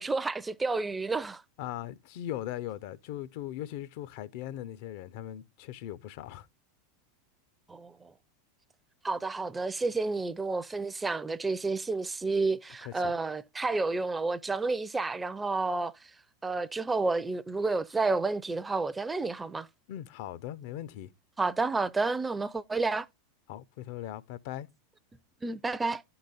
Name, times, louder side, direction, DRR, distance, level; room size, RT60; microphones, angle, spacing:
voice 1, 0.0-1.4 7.7-7.9 9.0-15.9 16.4-19.7 21.4-23.1 25.4-26.0, right 3 dB, 15° right, 0.4 m, -30 dB
voice 2, 1.6-6.5 12.5-13.1 19.9-21.1 23.5-24.7, left 12 dB, 55° left, 0.5 m, -39 dB
11.5 x 3.9 x 3.9 m
figure-of-eight pair, 85°, 0 cm